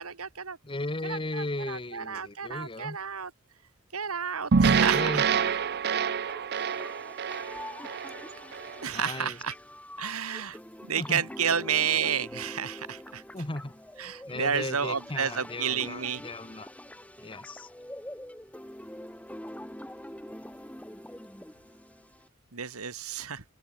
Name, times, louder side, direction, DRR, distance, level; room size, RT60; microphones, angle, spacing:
voice 1, 0.0-0.6 1.0-3.3 3.9-5.2 8.8-9.6 10.0-10.6 10.9-13.2 14.0-16.2 22.5-23.4, right 7 dB, 80° right, 2.1 m, -31 dB
voice 2, 0.6-3.0 4.9-5.2 8.9-9.4 10.9-11.2 13.3-13.7 14.3-16.7 17.2-17.7, left 2 dB, 25° left, 1.4 m, -36 dB
sound 1, 4.5-8.8, right 5 dB, 50° right, 0.6 m, -26 dB
sound 2, 6.3-22.3, left 1 dB, 5° left, 6.2 m, -45 dB
open air
head